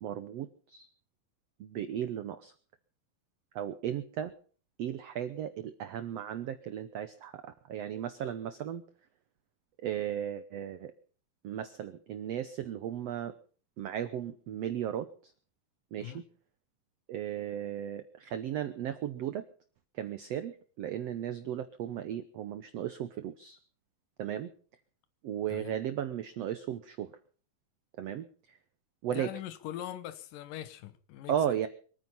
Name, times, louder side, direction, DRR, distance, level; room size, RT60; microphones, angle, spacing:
voice 1, 0.0-0.9 1.6-2.5 3.5-4.3 4.8-8.8 9.8-10.9 11.4-13.3 13.8-15.3 15.9-16.2 17.1-19.4 19.9-23.6 24.2-24.5 25.2-27.1 28.0-28.6 29.0-29.3 31.3-31.7, right 10 dB, 90° right, 1.4 m, -35 dB
voice 2, 29.1-31.6, left 12 dB, 70° left, 2.6 m, -42 dB
25.0 x 9.5 x 5.6 m
omnidirectional pair, 4.1 m